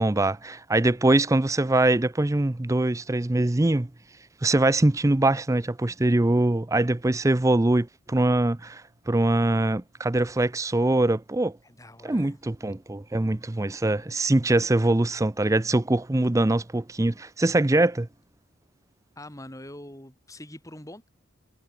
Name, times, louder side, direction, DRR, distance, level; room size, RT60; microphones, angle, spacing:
voice 1, 0.0-3.9 4.4-8.8 9.1-11.5 12.0-18.1, right 2 dB, 15° right, 0.5 m, -23 dB
voice 2, 11.6-12.4 19.2-21.1, left 1 dB, 15° left, 4.7 m, -44 dB
head